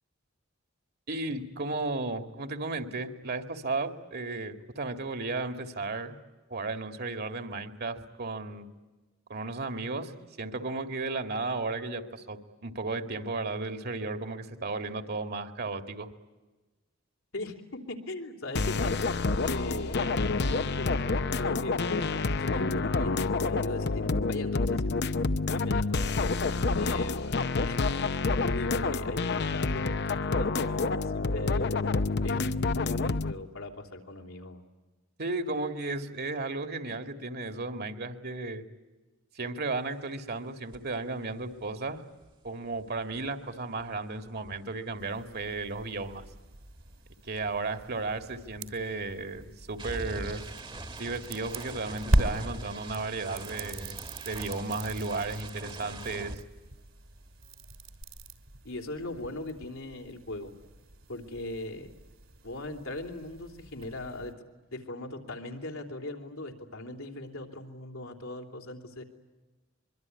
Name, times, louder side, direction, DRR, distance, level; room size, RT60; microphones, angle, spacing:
voice 1, 1.1-6.2 6.5-8.7 9.3-10.1 10.4-16.1 35.2-38.6 39.3-42.0 42.4-46.2 47.2-50.4 51.0-54.0 54.3-56.4, right 3 dB, 50° right, 8 dB, 2.1 m, -34 dB
voice 2, 17.3-19.1 19.4-25.0 25.5-27.4 27.6-31.8 32.2-34.6 58.6-60.5 61.1-61.9 62.4-64.4 64.7-69.0, left 2 dB, 80° left, 3 dB, 3.4 m, -39 dB
sound 1, 18.6-33.3, left 3 dB, 55° left, 0.8 m, -28 dB
sound 2, 40.7-40.9 41.2-45.6 45.8-57.1 57.4-58.0, right 2 dB, 25° right, 1.5 m, -44 dB
sound 3, 45.0-64.3, right 1 dB, 70° right, 3.3 m, -38 dB
24.5 x 23.5 x 9.6 m, 1.2 s
head